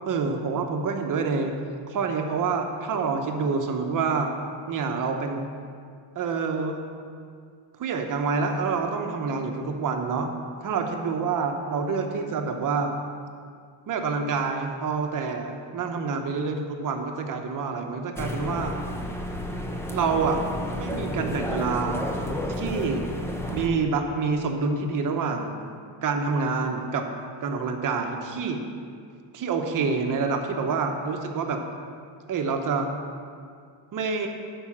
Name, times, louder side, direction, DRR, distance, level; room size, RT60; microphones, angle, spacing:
voice 1, 0.1-1.5 1.9-4.3 4.7-5.5 6.1-6.8 7.8-10.3 10.6-12.9 13.9-18.8 19.9-20.4 20.7-22.1 22.6-23.0 23.5-25.5 26.0-27.0 27.4-28.6 29.3-31.6 32.3-32.9 33.9-34.3, right 4 dB, 45° right, 4 dB, 0.9 m, -27 dB
sound 1, 18.2-23.7, left 1 dB, 5° left, 0.4 m, -31 dB
8.8 x 5.5 x 7.3 m, 2.2 s
cardioid pair, 175°, 45 cm